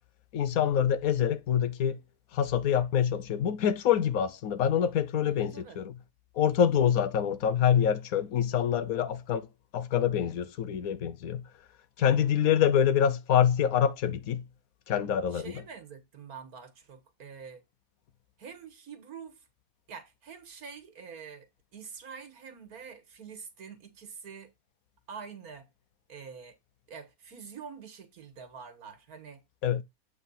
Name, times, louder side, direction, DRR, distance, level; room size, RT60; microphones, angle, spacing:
voice 1, 0.3-2.0 2.3-5.9 6.4-9.5 9.7-11.4 12.0-14.4 14.9-15.5 29.6-29.8, left 9 dB, 75° left, 1.2 m, -26 dB
voice 2, 5.3-5.8 12.0-12.3 15.3-17.6 18.4-19.4 19.9-24.5 25.1-25.7 26.1-26.6 26.9-29.4, right 6 dB, 90° right, 2.0 m, -46 dB
8.3 x 3.6 x 5.5 m
omnidirectional pair, 1.5 m